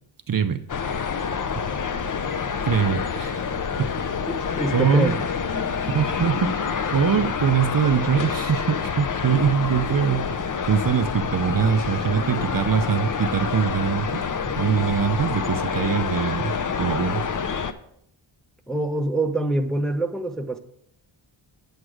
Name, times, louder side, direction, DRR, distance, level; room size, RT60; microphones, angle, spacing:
voice 1, 0.3-0.6 2.7-3.6 4.7-5.2 5.9-6.7 6.9-10.3 10.7-14.2 14.6-16.5 16.8-17.2, right 7 dB, 45° right, 0.6 m, -23 dB
sound 1, 0.7-17.7, left 6 dB, 40° left, 0.6 m, -27 dB
voice 2, 4.3-5.2 18.7-20.6, right 1 dB, ahead, 0.6 m, -25 dB
8.7 x 8.0 x 4.8 m
wide cardioid pair, 110°, 49 cm